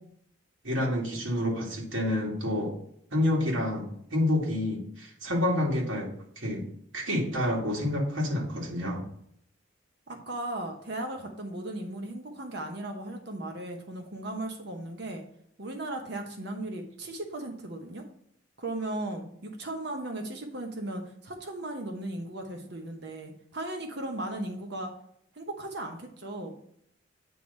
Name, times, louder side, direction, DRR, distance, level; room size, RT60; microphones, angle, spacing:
voice 1, 0.6-2.7 3.1-6.1 6.4-6.6 6.9-9.0, left 1 dB, 75° right, -2 dB, 2.2 m, -28 dB
voice 2, 10.1-15.2 15.6-18.0 18.6-24.9 25.3-26.6, right 1 dB, 55° right, 3 dB, 1.0 m, -36 dB
9.2 x 3.1 x 5.4 m, 0.70 s
head